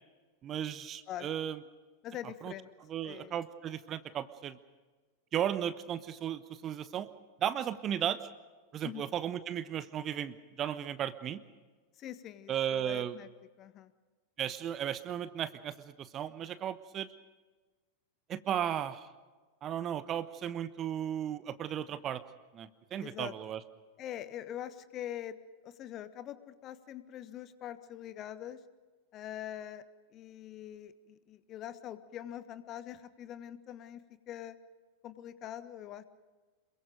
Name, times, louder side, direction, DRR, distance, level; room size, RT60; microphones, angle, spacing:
voice 1, 0.4-1.6 2.4-2.5 2.9-4.6 5.3-7.1 7.4-8.3 8.7-11.4 12.5-13.1 14.4-17.1 18.3-19.1 19.6-22.2 22.5-23.6, right 10 dB, 30° right, 14 dB, 1.1 m, -35 dB
voice 2, 2.0-2.7 3.0-3.3 8.8-9.0 12.0-13.3 13.6-13.9 23.0-23.3 24.0-25.4 25.6-28.6 29.1-29.8 30.1-34.6 35.0-36.0, left 11 dB, 35° left, 13 dB, 1.3 m, -43 dB
27.0 x 23.0 x 5.2 m, 1.3 s
figure-of-eight pair, 90°, 0 cm